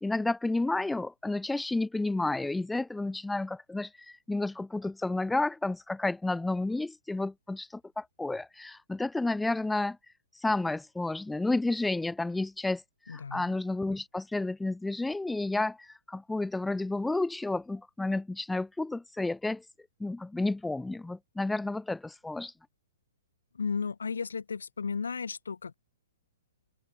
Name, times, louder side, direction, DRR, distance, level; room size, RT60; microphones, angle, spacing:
voice 1, 0.0-10.0 10.4-12.8 13.1-19.6 20.0-22.5, left 2 dB, 5° left, 0.8 m, -31 dB
voice 2, 13.1-13.6 23.5-25.7, left 5 dB, 70° left, 0.4 m, -34 dB
figure-of-eight pair, 115°, 0 cm